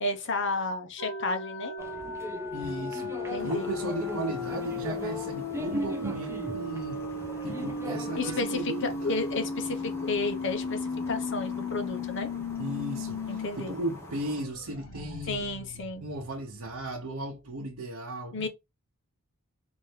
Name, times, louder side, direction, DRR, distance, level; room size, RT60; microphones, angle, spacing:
voice 1, 0.0-1.7 3.3-3.7 8.2-12.3 13.3-13.8 15.3-16.0 18.3-18.5, left 3 dB, 55° left, 0.8 m, -32 dB
sound 1, 1.0-13.5 13.8-13.9 14.3-17.0, left 3 dB, 85° left, 0.8 m, -36 dB
sound 2, 1.8-8.4, right 1 dB, 10° right, 0.3 m, -39 dB
voice 2, 2.5-7.1 7.4-9.1 12.6-15.5 16.0-18.5, right 1 dB, 85° right, 0.8 m, -36 dB
sound 3, 3.4-14.4, left 1 dB, 10° left, 1.1 m, -45 dB
4.1 x 2.7 x 3.2 m
head